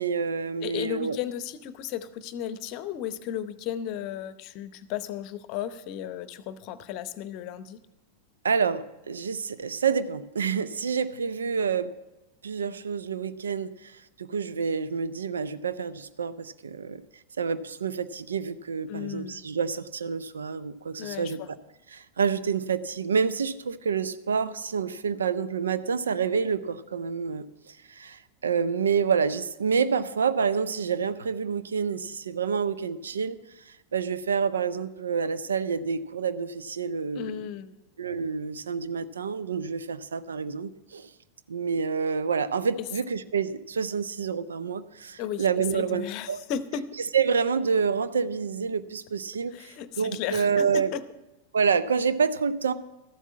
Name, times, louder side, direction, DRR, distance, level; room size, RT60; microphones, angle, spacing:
voice 1, 0.0-1.2 8.4-11.9 12.4-17.0 17.4-21.6 21.9-33.4 33.7-37.4 38.0-41.1 41.5-46.4 47.1-50.9 51.5-52.7, right 6 dB, 70° right, 14 dB, 0.5 m, -28 dB
voice 2, 0.6-7.8 18.9-19.4 21.0-21.5 37.1-37.8 42.8-42.9 45.2-45.5 45.7-46.9 49.5-51.0, left 10 dB, 40° left, 15 dB, 0.8 m, -34 dB
13.5 x 8.2 x 7.2 m, 1.0 s
figure-of-eight pair, 90°, 0 cm